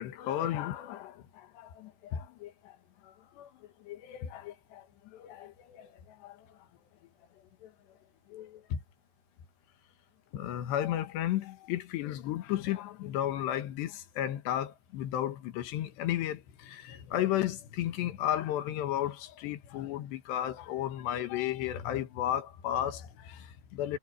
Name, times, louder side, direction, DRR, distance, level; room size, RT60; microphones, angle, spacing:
voice 1, 0.0-2.8 3.0-3.5 3.8-6.5 7.6-7.7 8.3-8.8 10.3-24.0, left 12 dB, 90° left, 3.7 m, -34 dB
omnidirectional pair, 4.8 m